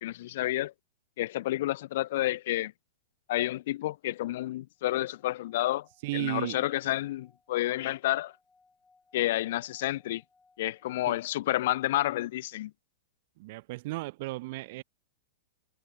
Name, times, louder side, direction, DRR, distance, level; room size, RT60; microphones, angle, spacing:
voice 1, 0.0-0.7 1.2-2.7 3.3-5.9 6.1-8.3 9.1-10.2 10.6-12.7, left 15 dB, 55° left, 0.3 m, -30 dB
Singing / Glass, 4.8-11.4, left 3 dB, 10° left, 6.5 m, -67 dB
voice 2, 6.0-6.6 11.1-11.2 13.4-14.8, right 20 dB, 50° right, 1.1 m, -34 dB
figure-of-eight pair, 100°, 0 cm